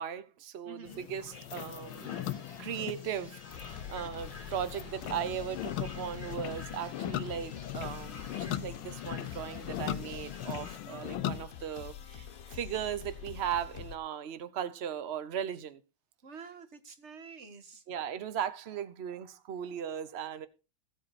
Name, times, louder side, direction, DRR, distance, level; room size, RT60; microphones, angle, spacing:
voice 1, 0.0-2.1 2.6-15.8 17.9-20.5, right 9 dB, 65° right, 0.6 m, -37 dB
voice 2, 0.6-1.1 10.8-11.5 16.2-17.8, right 5 dB, 40° right, 1.5 m, -49 dB
sound 1, 0.8-11.4, left 11 dB, 80° left, 1.5 m, -39 dB
sound 2, 1.2-10.7, left 2 dB, 20° left, 1.8 m, -51 dB
sound 3, 3.5-14.0, left 9 dB, 50° left, 1.3 m, -46 dB
16.0 x 7.8 x 4.1 m
omnidirectional pair, 2.2 m